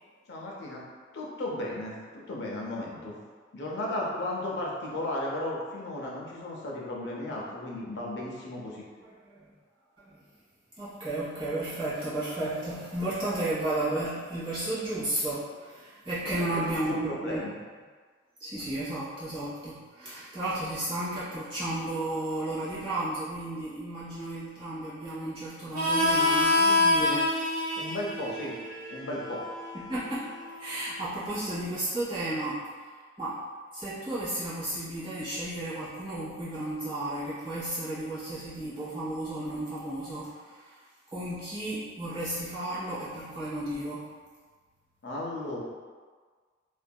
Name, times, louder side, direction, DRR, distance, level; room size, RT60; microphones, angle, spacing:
voice 1, 0.3-0.8 1.1-3.2 3.5-8.8 16.4-17.5 27.8-28.5 28.9-29.4 45.0-45.6, left 1 dB, 60° left, -3 dB, 0.5 m, -35 dB
voice 2, 9.0-9.4 10.0-10.2 10.8-17.4 18.4-27.3 29.7-30.3 30.6-32.9 33.2-33.4 33.7-40.8 41.1-44.1, right 1 dB, 25° right, -11 dB, 1.0 m, -33 dB
Harmonica, 25.7-31.0, left 2 dB, 50° right, 0.6 m, -27 dB
2.6 x 2.5 x 2.2 m, 1.5 s
head